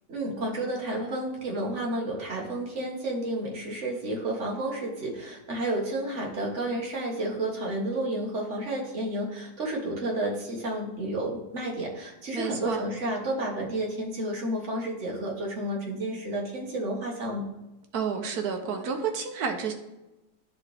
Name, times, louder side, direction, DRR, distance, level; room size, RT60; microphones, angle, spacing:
voice 1, 0.1-17.4, right 1 dB, 45° right, -1 dB, 1.7 m, -31 dB
voice 2, 12.3-12.8 17.9-19.7, right 6 dB, 65° right, 5 dB, 1.2 m, -30 dB
11.5 x 4.1 x 3.4 m, 0.99 s
omnidirectional pair, 1.9 m